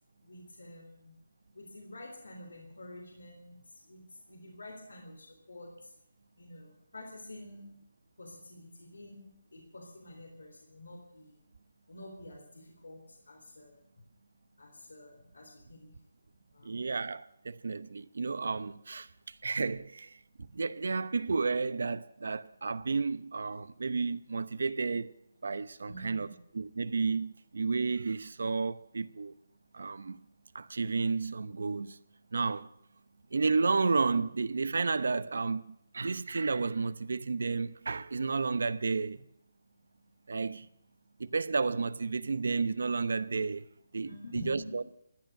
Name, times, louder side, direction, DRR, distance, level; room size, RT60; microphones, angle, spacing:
voice 1, 0.2-1.2 1.5-5.9 6.4-7.8 8.2-11.4 11.9-13.8 14.6-15.9 16.5-16.9 25.9-26.4 44.0-44.8, left 1 dB, 90° left, 3.4 m, -48 dB
voice 2, 16.6-20.2 20.5-25.1 25.4-26.3 26.5-29.3 29.7-30.2 30.5-32.0 32.3-32.7 33.3-39.2 40.3-40.7 41.2-43.7 43.9-44.8, right 4 dB, 75° right, 0.8 m, -32 dB
15.0 x 9.2 x 9.0 m
hypercardioid pair, 160°, 0 cm